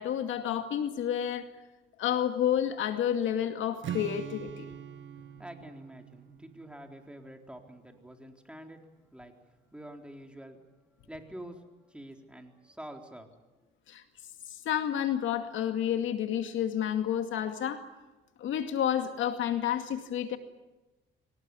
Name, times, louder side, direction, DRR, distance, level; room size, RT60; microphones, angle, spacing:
voice 1, 0.0-1.5 2.0-4.7 13.9-14.0 14.5-17.8 18.4-20.4, left 10 dB, 80° left, 7 dB, 2.2 m, -30 dB
Strum, 3.8-7.9, right 9 dB, 75° right, 1.6 m, -43 dB
voice 2, 5.2-8.8 9.1-13.3, right 1 dB, 5° right, 3 dB, 3.9 m, -47 dB
24.5 x 19.0 x 9.9 m, 1.1 s
cardioid pair, 90°, 20 cm